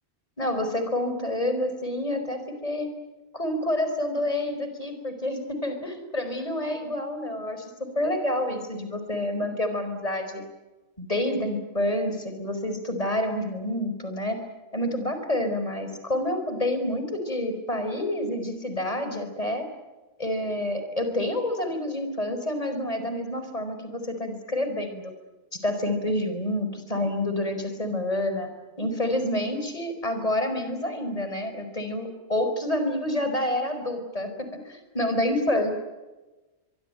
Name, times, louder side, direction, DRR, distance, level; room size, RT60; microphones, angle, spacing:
voice 1, 0.4-2.9 3.3-10.4 11.0-14.4 14.7-19.7 20.2-25.1 25.6-28.5 28.8-35.7, left 1 dB, 35° left, 7 dB, 5.1 m, -28 dB
24.0 x 23.5 x 9.1 m, 1.1 s
omnidirectional pair, 1.1 m